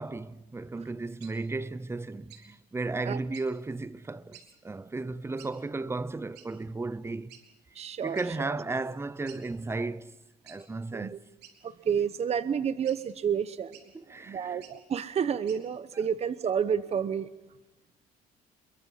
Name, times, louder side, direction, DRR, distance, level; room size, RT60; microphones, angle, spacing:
voice 1, 0.0-7.3 8.0-10.2 10.4-11.2 13.9-14.6, right 3 dB, 15° right, 0.8 m, -35 dB
sound 1, 1.2-1.3 2.3-2.5 3.3-3.5 4.3-4.5 5.4-5.5 6.3-6.5 7.3-7.4 8.1-8.3 8.7-8.8 9.3-9.4 10.5-10.6 11.4-11.9 12.8-13.0 13.7-13.9 14.5-14.8 15.5-15.6, right 9 dB, 80° right, 3.7 m, -52 dB
voice 2, 7.7-8.6 10.9-11.2 11.6-13.8 14.1-17.3, right 7 dB, 40° right, 0.9 m, -30 dB
27.5 x 23.0 x 5.7 m
cardioid pair, 110°, 17 cm